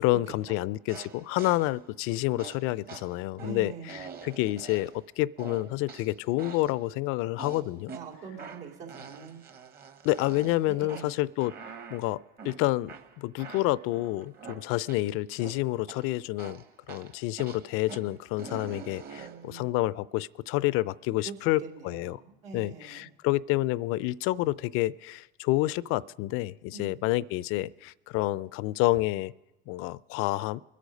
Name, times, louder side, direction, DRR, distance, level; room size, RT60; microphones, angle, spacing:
voice 1, 0.0-7.9 10.0-11.5 11.9-12.2 12.4-22.2 22.5-29.3 29.7-30.6, left 17 dB, 50° left, 0.4 m, -29 dB
sound 1, 0.9-1.8 2.4-5.1 5.4-6.8 7.4-15.1 15.4-16.1 16.4-19.5, right 6 dB, 35° right, 1.1 m, -45 dB
voice 2, 3.4-4.0 7.9-9.4 10.6-11.1 19.1-19.6 21.2-23.1 26.7-27.0, right 6 dB, 75° right, 2.8 m, -44 dB
24.0 x 8.4 x 5.2 m
hypercardioid pair, 100°, 29 cm